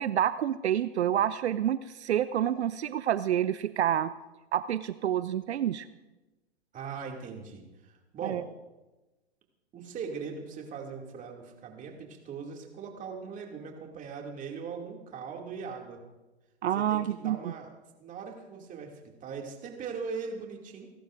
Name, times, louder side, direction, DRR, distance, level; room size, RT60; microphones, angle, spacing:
voice 1, 0.0-4.1 4.5-5.9 8.2-8.4 16.6-17.5, right 10 dB, 75° right, 14 dB, 0.6 m, -28 dB
voice 2, 6.7-8.4 9.7-16.0 16.8-17.7 18.0-20.9, right 5 dB, 25° right, 1 dB, 2.4 m, -40 dB
29.5 x 11.5 x 2.6 m, 1.1 s
hypercardioid pair, 115°, 33 cm